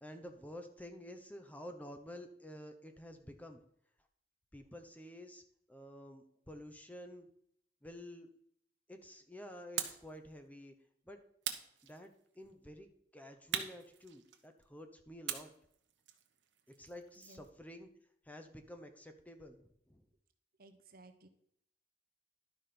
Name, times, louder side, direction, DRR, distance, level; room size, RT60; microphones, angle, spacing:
voice 1, 0.0-3.6 4.5-5.4 5.7-7.3 7.8-8.3 8.9-10.7 11.1-11.2 11.8-12.9 13.1-15.5 16.7-17.9 18.2-20.1, left 1 dB, 10° left, 6 dB, 0.8 m, -50 dB
sound 1, 9.8-10.1 11.4-12.4 13.5-14.6 15.3-17.5, right 9 dB, 90° right, 1.0 m, -42 dB
voice 2, 17.2-17.5 20.6-21.3, right 2 dB, 55° right, 8 dB, 1.0 m, -58 dB
11.5 x 5.1 x 5.9 m, 0.70 s
head